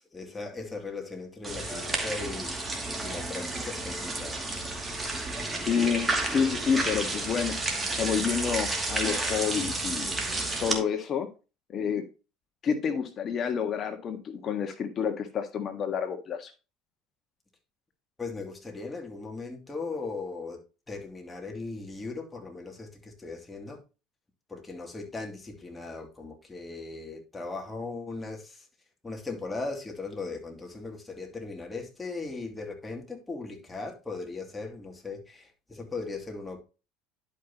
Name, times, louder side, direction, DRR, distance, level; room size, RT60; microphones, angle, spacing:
voice 1, 0.0-4.4 18.2-20.6 20.9-23.8 24.5-28.7 29.0-36.6, left 3 dB, 15° left, 2.7 m, -38 dB
sound 1, 1.4-10.8, right 2 dB, 15° right, 2.5 m, -31 dB
voice 2, 5.7-7.6 7.9-10.1 10.6-11.3 11.7-12.1 12.6-16.5, left 7 dB, 45° left, 1.6 m, -29 dB
11.0 x 5.7 x 2.9 m
supercardioid pair, 90°, 0 cm